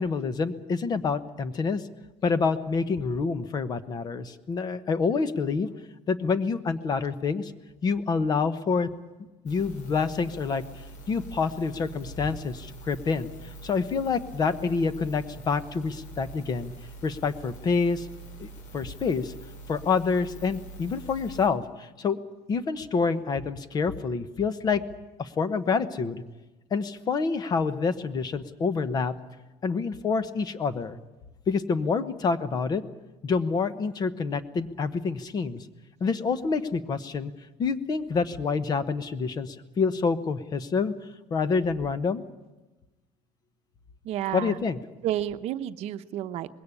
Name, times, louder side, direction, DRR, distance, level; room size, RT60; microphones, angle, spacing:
voice 1, 0.0-1.8 2.2-5.7 6.1-7.5 7.8-8.9 9.4-10.6 11.1-13.3 13.6-16.7 17.0-18.1 18.4-19.3 19.7-22.2 22.5-24.8 25.2-26.2 26.7-29.1 29.6-31.0 31.5-32.8 33.2-35.7 36.0-37.3 37.6-40.9 41.3-42.2 44.3-44.8, left 5 dB, 30° left, 14 dB, 1.1 m, -27 dB
sound 1, 9.5-21.5, right 3 dB, 70° left, 4.9 m, -45 dB
voice 2, 44.0-44.6 45.0-46.6, right 12 dB, 55° right, 10 dB, 0.9 m, -31 dB
21.0 x 17.0 x 9.9 m, 1.1 s
cardioid pair, 150°, 13 cm